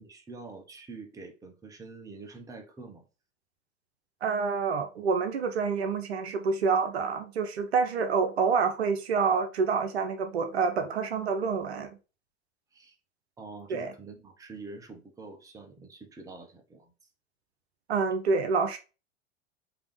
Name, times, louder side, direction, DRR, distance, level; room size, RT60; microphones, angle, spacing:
voice 1, 0.0-3.1 12.7-13.0 13.4-16.9, right 3 dB, 10° right, 0.8 m, -46 dB
voice 2, 4.2-12.0 13.7-13.9 17.9-18.8, right 5 dB, 65° right, 0.8 m, -27 dB
5.1 x 2.9 x 3.1 m
figure-of-eight pair, 85°, 34 cm